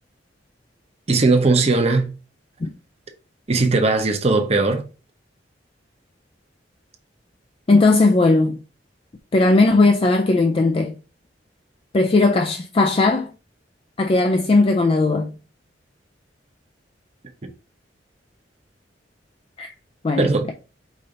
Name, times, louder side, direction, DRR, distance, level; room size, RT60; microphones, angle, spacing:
voice 1, 1.1-2.1 3.5-4.9 17.4-17.5 20.2-20.5, right 3 dB, 35° right, 0.8 m, -18 dB
voice 2, 7.7-8.6 9.3-10.9 11.9-13.3 14.0-15.3 19.6-19.7 20.0-20.5, left 2 dB, 30° left, 0.4 m, -17 dB
5.1 x 2.7 x 3.9 m
head